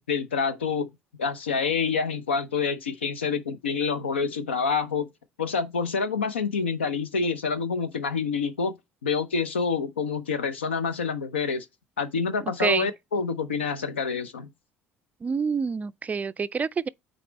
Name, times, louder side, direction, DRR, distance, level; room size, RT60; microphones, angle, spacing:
voice 1, 0.1-0.9 1.2-5.1 5.4-8.7 9.0-11.7 12.0-14.5, left 5 dB, 80° left, 0.6 m, -27 dB
voice 2, 12.4-12.9 15.2-16.9, right 5 dB, 25° right, 0.3 m, -27 dB
8.9 x 4.1 x 3.0 m
figure-of-eight pair, 60°, 6 cm